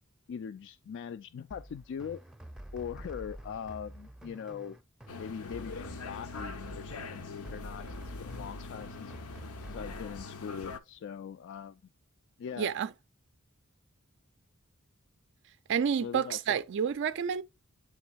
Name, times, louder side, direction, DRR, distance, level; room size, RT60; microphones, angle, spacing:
voice 1, 0.3-2.2 2.7-4.8 5.1-9.1 9.7-11.8 12.4-12.7 16.0-16.6, left 7 dB, 55° left, 0.3 m, -41 dB
sound 1, 1.5-10.2, right 1 dB, 5° right, 0.5 m, -47 dB
sound 2, 5.1-10.8, left 4 dB, 85° left, 0.7 m, -43 dB
voice 2, 12.6-12.9 15.7-17.4, right 7 dB, 55° right, 0.4 m, -29 dB
8.2 x 3.1 x 4.1 m
head